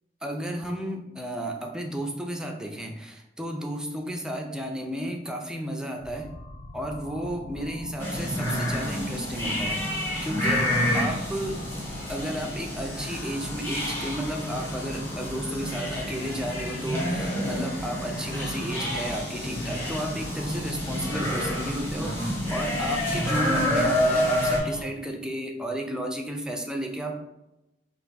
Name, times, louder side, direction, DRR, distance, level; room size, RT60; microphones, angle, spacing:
voice 1, 0.2-6.3 6.7-11.6 12.1-27.1, equal, 5° right, 2 dB, 0.4 m, -33 dB
sound 1, 6.0-24.8, left 2 dB, 75° left, 0.5 m, -40 dB
sound 2, 8.0-24.6, equal, 15° left, 1.2 m, -29 dB
3.3 x 2.5 x 4.0 m, 0.94 s
head